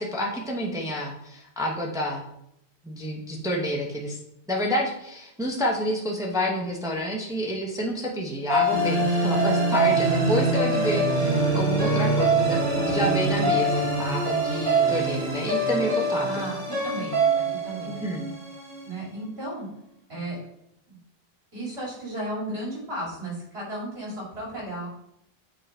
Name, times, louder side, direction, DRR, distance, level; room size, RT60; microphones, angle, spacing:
voice 1, 0.0-2.2 2.8-4.2 4.5-16.5 17.9-18.2, equal, 5° right, -1 dB, 0.9 m, -29 dB
sound 1, 8.5-18.8, right 2 dB, 55° right, 3.2 m, -24 dB
voice 2, 16.2-18.0 18.8-19.7 20.1-20.4 20.9-21.0 21.5-24.9, right 1 dB, 70° right, -5 dB, 3.2 m, -34 dB
7.5 x 3.8 x 4.4 m, 0.77 s
omnidirectional pair, 1.1 m